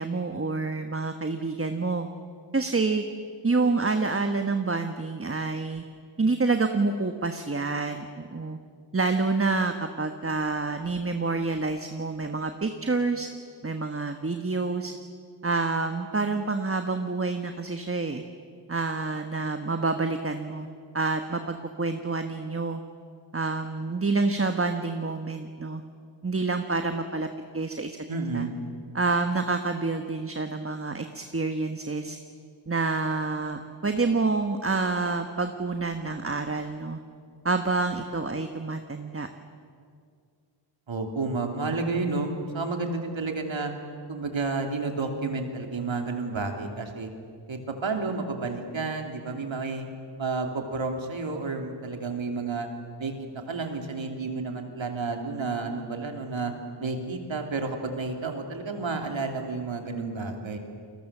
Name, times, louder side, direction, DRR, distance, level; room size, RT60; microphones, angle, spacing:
voice 1, 0.0-2.1 2.5-3.0 3.4-5.8 6.2-8.6 8.9-13.3 13.6-14.9 15.4-18.2 18.7-20.7 20.9-22.8 23.3-25.8 26.2-27.3 27.5-28.0 28.3-28.4 28.9-32.2 32.7-37.0 37.4-39.3, right 3 dB, 30° right, 6 dB, 1.3 m, -28 dB
voice 2, 28.1-28.5 40.9-43.7 44.1-47.1 47.5-49.9 50.2-52.7 53.0-56.5 56.8-60.6, right 3 dB, 85° right, 4 dB, 3.0 m, -31 dB
29.5 x 22.0 x 7.3 m, 2.2 s
wide cardioid pair, 70°, 45 cm